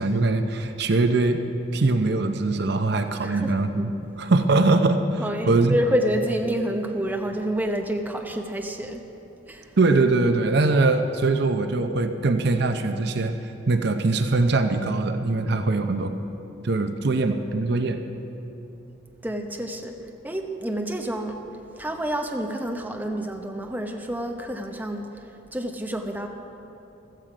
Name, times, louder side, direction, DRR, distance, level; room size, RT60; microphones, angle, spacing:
voice 1, 0.0-1.4 1.7-5.2 5.5-5.8 9.8-16.1 16.6-18.0, right 3 dB, 55° right, 7 dB, 0.6 m, -22 dB
voice 2, 3.2-3.6 5.2-9.0 9.5-9.7 19.2-20.0 20.2-21.4 21.8-26.3, equal, 10° right, 3 dB, 0.9 m, -28 dB
15.0 x 13.5 x 5.0 m, 2.9 s
head